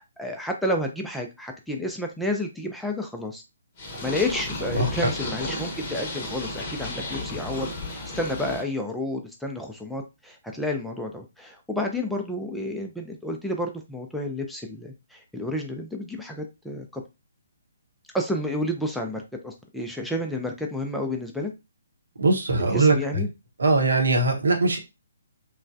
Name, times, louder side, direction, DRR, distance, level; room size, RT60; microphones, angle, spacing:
voice 1, 0.0-3.4 4.0-17.0 18.1-21.5 22.6-23.3, left 1 dB, ahead, 1 dB, 0.4 m, -30 dB
Purr, 3.8-8.6, left 2 dB, 30° left, 0.8 m, -33 dB
voice 2, 4.7-5.1 22.2-23.2 23.6-24.8, right 2 dB, 65° right, 2 dB, 0.8 m, -21 dB
3.0 x 2.1 x 2.5 m, 0.25 s
figure-of-eight pair, 135°, 0 cm